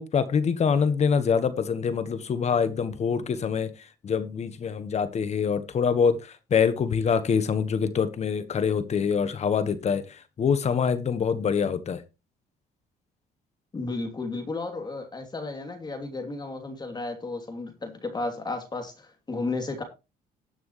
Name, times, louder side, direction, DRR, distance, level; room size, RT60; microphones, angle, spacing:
voice 1, 0.0-3.7 4.0-12.0, left 6 dB, 40° left, 1.4 m, -25 dB
voice 2, 13.7-19.8, left 3 dB, 25° left, 2.9 m, -33 dB
18.5 x 6.2 x 3.2 m
cardioid pair, 110°, 17 cm